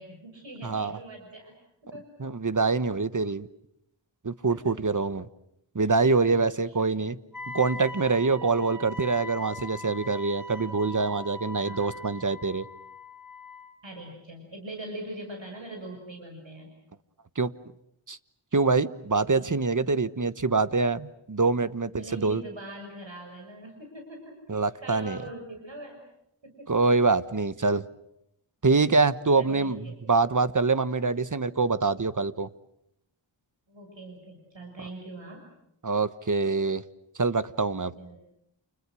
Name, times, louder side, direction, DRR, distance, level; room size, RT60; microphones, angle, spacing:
voice 1, 0.0-1.5 1.8-2.1 4.5-4.7 6.1-6.4 6.7-6.8 8.4-8.7 10.5-10.7 11.6-12.0 13.8-16.7 19.4-19.5 22.0-26.0 26.4-26.7 29.4-30.0 33.7-35.5 38.0-38.2, right 1 dB, 65° right, 6.4 m, -42 dB
voice 2, 0.6-1.0 2.2-3.5 4.2-5.3 5.7-7.2 7.5-12.7 17.4-17.5 18.1-18.2 18.5-22.4 24.5-25.2 26.7-27.8 28.6-32.5 35.8-36.8 37.2-37.9, right 4 dB, 40° right, 1.2 m, -25 dB
Wind instrument woodwind instrument, 7.3-13.8, left 1 dB, 40° left, 3.6 m, -41 dB
29.5 x 29.0 x 6.3 m
wide cardioid pair, 60°, 48 cm